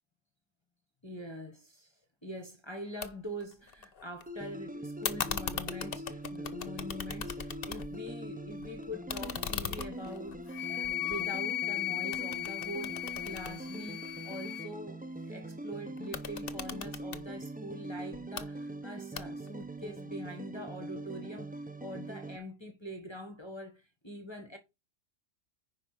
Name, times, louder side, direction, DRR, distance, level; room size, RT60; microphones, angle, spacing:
voice 1, 1.0-15.0 15.2-24.6, equal, 20° left, 1.5 m, -44 dB
sound 1, 3.0-3.1 3.4-4.2 5.0-8.1 8.5-11.7 12.1-14.4 16.0-17.2 18.1-18.5 19.2-19.6, left 7 dB, 55° left, 1.0 m, -39 dB
sound 2, 4.3-22.4, right 1 dB, 10° right, 0.5 m, -42 dB
Wind instrument woodwind instrument, 10.5-14.7, left 14 dB, 80° left, 1.0 m, -36 dB
10.0 x 5.2 x 4.9 m
omnidirectional pair, 1.3 m